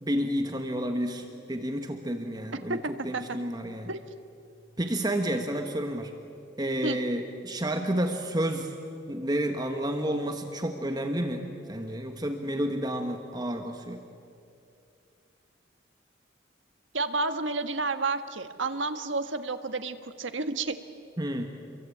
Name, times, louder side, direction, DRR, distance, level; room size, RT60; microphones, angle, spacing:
voice 1, 0.0-2.8 3.0-3.9 4.8-6.1 6.6-8.7 9.1-14.0 21.2-21.5, right 1 dB, 20° right, 5 dB, 1.4 m, -30 dB
voice 2, 2.5-3.2 3.9-4.0 6.8-7.0 16.9-20.8, right 3 dB, 80° right, 8 dB, 1.5 m, -31 dB
28.0 x 23.0 x 8.6 m, 2.5 s
head